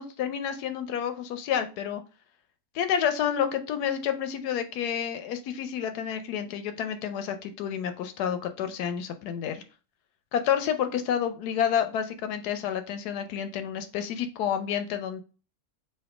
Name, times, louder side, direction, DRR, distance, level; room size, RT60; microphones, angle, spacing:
voice 1, 0.0-2.0 2.7-9.6 10.3-15.2, left 8 dB, 85° left, 8 dB, 1.2 m, -29 dB
4.3 x 2.5 x 4.7 m, 0.35 s
omnidirectional pair, 1.6 m